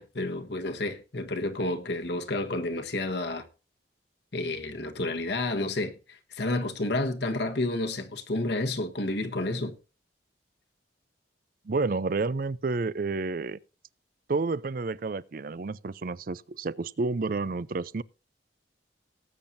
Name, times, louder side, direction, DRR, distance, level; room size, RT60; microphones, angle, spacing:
voice 1, 0.0-3.5 4.3-9.7, left 2 dB, 70° left, 1.4 m, -30 dB
voice 2, 11.7-13.6 14.3-18.0, right 3 dB, 50° right, 0.5 m, -30 dB
18.5 x 8.8 x 2.6 m
head